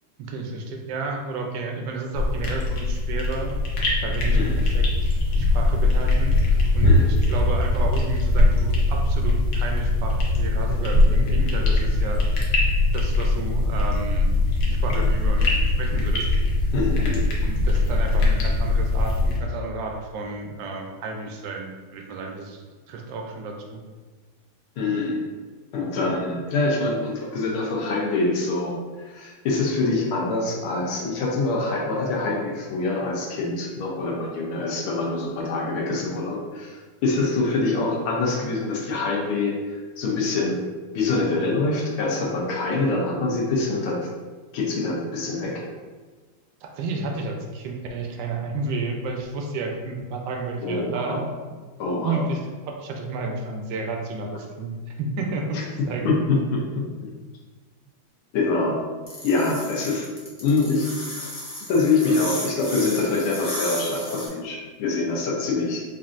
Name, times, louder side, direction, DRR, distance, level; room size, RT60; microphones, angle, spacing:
voice 1, 0.2-3.5 4.0-12.5 12.9-14.4 14.7-16.3 16.6-16.7 17.4-23.8 46.6-51.2 51.5-51.6 52.0-55.6 55.8-56.1, right 3 dB, 75° right, 2 dB, 1.1 m, -32 dB
sound 1, 2.1-19.4, left 2 dB, 60° left, 1.1 m, -21 dB
voice 2, 16.7-17.3 24.8-25.3 25.7-40.6 40.9-44.1 44.5-45.6 50.6-51.3 51.8-52.3 55.5-55.6 56.0-56.6 57.0-57.1 58.3-58.8 59.2-60.1 60.4-61.3 61.7-65.8, left 3 dB, 85° left, -2 dB, 1.6 m, -25 dB
sound 2, 59.1-64.3, left 1 dB, 30° left, 0.4 m, -34 dB
5.2 x 2.5 x 2.5 m, 1.4 s
omnidirectional pair, 2.3 m